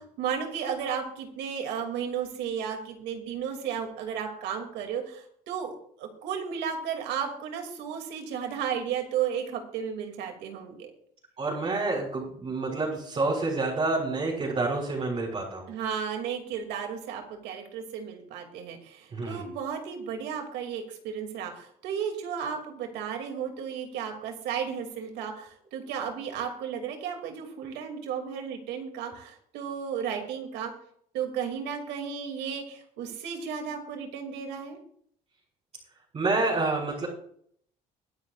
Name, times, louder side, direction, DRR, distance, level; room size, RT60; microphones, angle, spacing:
voice 1, 0.0-10.9 15.7-30.7 31.1-34.8, right 7 dB, 90° right, 4 dB, 2.5 m, -34 dB
voice 2, 11.4-15.7 19.1-19.4 36.1-37.1, right 3 dB, 40° right, -5 dB, 4.4 m, -28 dB
22.5 x 9.6 x 2.4 m, 0.65 s
cardioid pair, 110°, 17 cm